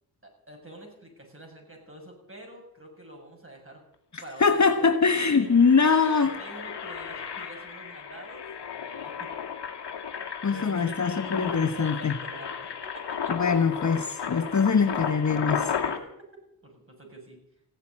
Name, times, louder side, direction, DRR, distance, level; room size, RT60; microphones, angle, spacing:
voice 1, 0.2-3.8 4.2-5.5 6.4-9.3 10.5-13.3 15.8-16.1 16.6-17.4, right 1 dB, 30° right, 1 dB, 7.2 m, -46 dB
voice 2, 4.1-6.4 10.4-12.1 13.3-15.7, left 5 dB, 40° left, 8 dB, 1.2 m, -23 dB
Engine, 4.2-4.3 4.6-4.8 5.3-16.0, left 7 dB, 60° left, 2.1 m, -34 dB
16.0 x 8.0 x 9.8 m, 0.75 s
cardioid pair, 50°, 45 cm